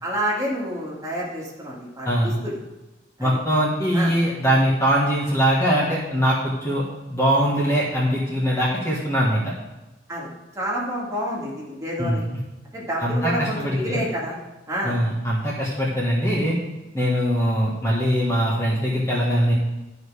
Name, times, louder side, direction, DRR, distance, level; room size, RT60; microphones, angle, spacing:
voice 1, 0.0-2.6 3.2-3.3 3.9-4.1 10.1-10.3 10.6-12.3 12.7-14.3 14.7-15.0, equal, 15° right, -5 dB, 2.3 m, -28 dB
voice 2, 2.0-2.4 3.2-6.8 7.1-9.5 12.0-12.2 13.0-14.0 14.8-16.6 16.9-19.6, equal, 15° left, -5 dB, 1.5 m, -22 dB
12.0 x 4.9 x 4.9 m, 1.1 s
head